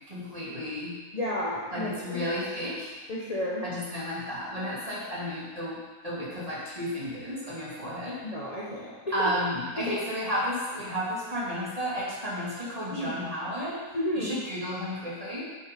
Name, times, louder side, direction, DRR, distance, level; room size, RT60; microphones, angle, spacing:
voice 1, 0.1-0.9 1.7-2.9 3.6-8.2 9.1-15.4, equal, 25° right, -7 dB, 2.6 m, -32 dB
voice 2, 1.1-2.4 3.1-3.7 8.2-9.3 9.9-10.0 12.9-13.1 13.9-14.4, left 1 dB, 25° left, -6 dB, 1.3 m, -32 dB
8.0 x 7.5 x 5.4 m, 1.3 s
omnidirectional pair, 1.6 m